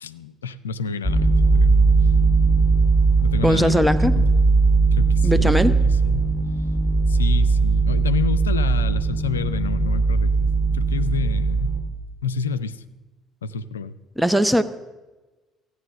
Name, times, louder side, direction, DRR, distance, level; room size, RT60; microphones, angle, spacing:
voice 1, 0.0-1.7 3.2-4.3 4.9-5.6 5.8-6.3 7.1-11.7 12.2-12.8 13.4-14.0, left 6 dB, 80° left, 13 dB, 0.4 m, -29 dB
sound 1, 1.0-11.8, right 4 dB, 20° right, 2.3 m, -19 dB
voice 2, 3.4-4.2 5.2-5.8 14.2-14.6, equal, 5° right, 11 dB, 0.8 m, -19 dB
14.5 x 9.5 x 6.6 m, 1.2 s
figure-of-eight pair, 55°, 0 cm